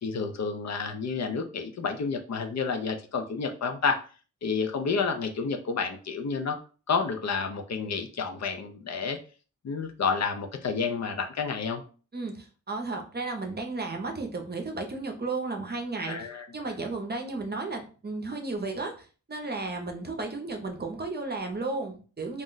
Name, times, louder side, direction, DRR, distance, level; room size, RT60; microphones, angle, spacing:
voice 1, 0.0-4.0 4.4-6.6 6.9-9.2 9.6-11.8 16.1-16.5, left 5 dB, 60° left, 5 dB, 0.5 m, -30 dB
voice 2, 12.1-16.3 16.5-22.4, right 3 dB, 35° right, 3 dB, 0.6 m, -34 dB
2.4 x 2.1 x 3.8 m, 0.38 s
wide cardioid pair, 90°, 31 cm